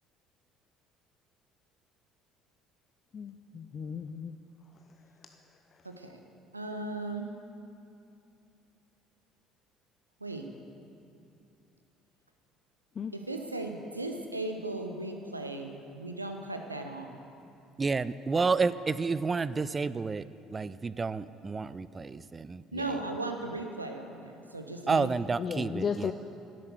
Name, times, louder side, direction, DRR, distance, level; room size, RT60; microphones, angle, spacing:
voice 1, 3.1-4.3 13.0-13.1 25.4-26.1, left 6 dB, 40° left, 8 dB, 0.4 m, -34 dB
voice 2, 5.8-6.2 6.5-7.3 10.2-10.4 13.1-17.1 22.7-25.1, right 2 dB, 90° right, 5 dB, 0.7 m, -37 dB
voice 3, 17.8-20.2 20.5-23.0 24.9-26.1, right 4 dB, 25° right, 16 dB, 0.4 m, -30 dB
11.0 x 8.4 x 8.1 m, 2.7 s
figure-of-eight pair, 55°, 0 cm